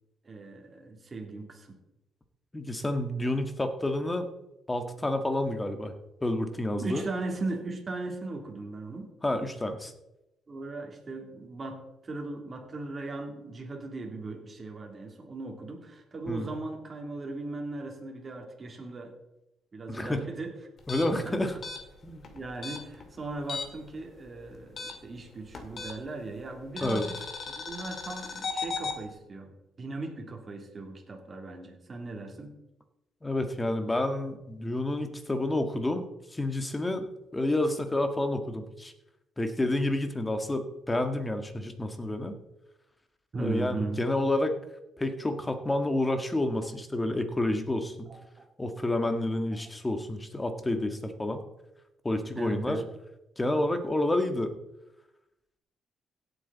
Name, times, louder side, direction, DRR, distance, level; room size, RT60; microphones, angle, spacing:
voice 1, 0.2-1.8 6.8-9.1 10.5-19.2 19.7-20.5 21.2-21.6 22.3-27.1 27.5-29.5 29.8-32.6 43.3-44.0 48.1-48.4 52.3-52.9, right 3 dB, 35° right, 2 dB, 3.1 m, -38 dB
voice 2, 2.5-4.3 4.7-5.9 6.2-7.0 9.2-9.9 16.3-16.5 19.9-20.3 20.9-21.6 22.0-22.3 26.8-27.0 33.2-36.0 36.3-37.1 37.3-38.9 39.4-42.3 43.4-44.6 45.0-48.1 48.6-51.4 52.1-52.8 53.4-54.5, left 1 dB, 15° left, 7 dB, 1.6 m, -29 dB
sound 1, 20.8-23.9 24.2-26.2 26.8-29.0, left 4 dB, 50° left, 2.2 m, -37 dB
16.5 x 8.4 x 4.1 m, 0.91 s
cardioid pair, 90°, 0 cm